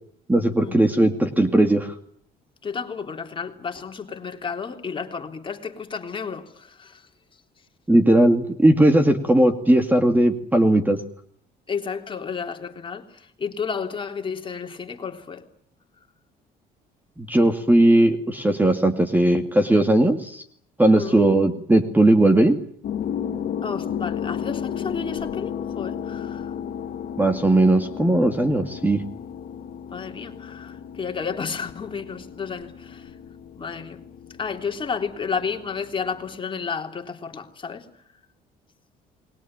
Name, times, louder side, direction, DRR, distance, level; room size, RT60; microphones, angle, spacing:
voice 1, 0.3-1.9 7.9-11.0 17.2-20.4 20.8-22.6 27.2-29.0, right 1 dB, 10° right, 2.3 m, -18 dB
voice 2, 2.6-7.1 11.7-15.5 20.9-21.2 23.6-26.5 29.9-33.1 33.5-34.1 34.4-37.9, left 6 dB, 30° left, 3.3 m, -32 dB
sound 1, 22.8-36.4, left 8 dB, 60° left, 1.8 m, -34 dB
28.5 x 21.0 x 8.9 m
cardioid pair, 110°, 17 cm